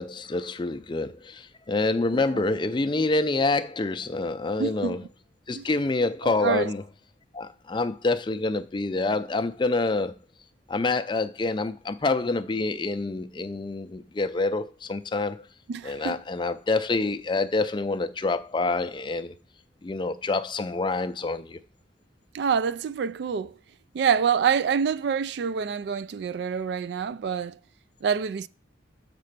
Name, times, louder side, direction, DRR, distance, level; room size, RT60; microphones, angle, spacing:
voice 1, 0.0-5.0 5.5-6.8 7.3-10.2 10.7-15.4 15.8-19.3 19.8-21.6, left 3 dB, 25° left, 0.4 m, -27 dB
voice 2, 4.6-5.0 5.5-5.7 6.2-6.7 15.7-16.2 22.3-23.5 23.9-27.6 28.0-28.5, right 7 dB, 60° right, 0.3 m, -26 dB
6.7 x 4.2 x 6.6 m
head